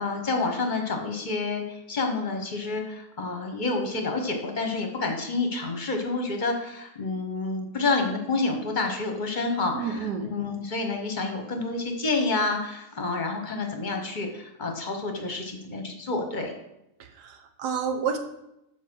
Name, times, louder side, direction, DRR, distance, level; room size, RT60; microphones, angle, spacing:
voice 1, 0.0-16.5, left 3 dB, 35° left, 3 dB, 1.0 m, -29 dB
voice 2, 9.7-10.3 17.0-18.2, right 6 dB, 85° right, 5 dB, 1.5 m, -30 dB
7.0 x 4.5 x 6.1 m, 0.87 s
omnidirectional pair, 1.7 m